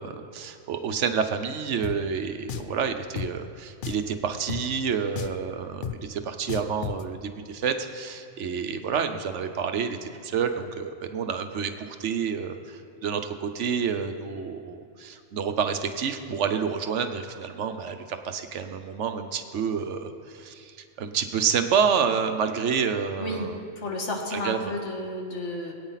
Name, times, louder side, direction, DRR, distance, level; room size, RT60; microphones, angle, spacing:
voice 1, 0.0-23.6 24.3-24.7, right 6 dB, 75° right, 7 dB, 1.1 m, -29 dB
Drum, 1.8-2.0 2.5-2.7 3.2-3.3 3.8-4.1 4.5-4.6 5.2-5.4 5.8-6.0 6.5-7.0, left 8 dB, 55° left, 0.6 m, -33 dB
voice 2, 23.2-25.7, left 1 dB, 70° left, 1 dB, 1.9 m, -32 dB
22.0 x 9.0 x 4.0 m, 2.4 s
omnidirectional pair, 1.3 m